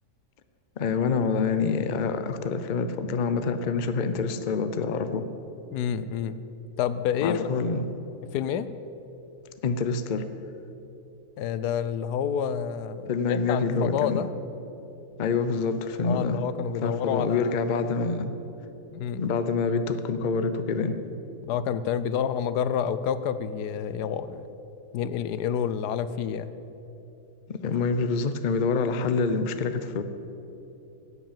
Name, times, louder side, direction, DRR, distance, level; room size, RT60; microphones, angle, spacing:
voice 1, 0.8-5.2 7.2-7.9 9.6-10.2 13.1-14.2 15.2-16.4 16.8-18.3 19.2-21.0 27.5-30.0, left 4 dB, 50° left, 10 dB, 0.5 m, -26 dB
voice 2, 5.7-6.4 6.8-7.4 8.3-8.7 11.4-14.3 16.0-17.6 18.9-19.2 21.4-24.5 24.9-26.5, left 8 dB, 85° left, 13 dB, 1.2 m, -28 dB
11.0 x 8.2 x 8.9 m, 2.9 s
omnidirectional pair, 1.7 m